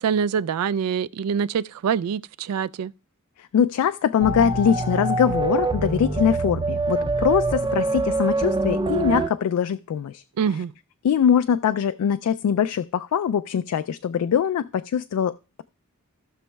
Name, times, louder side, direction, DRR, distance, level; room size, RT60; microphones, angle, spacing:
voice 1, 0.0-2.9 10.4-10.7, right 7 dB, 85° right, 0.3 m, -25 dB
voice 2, 3.4-10.2 11.0-15.6, left 8 dB, 90° left, 0.3 m, -22 dB
sound 1, 4.2-9.3, right 3 dB, 20° right, 0.4 m, -24 dB
17.5 x 6.2 x 2.2 m
head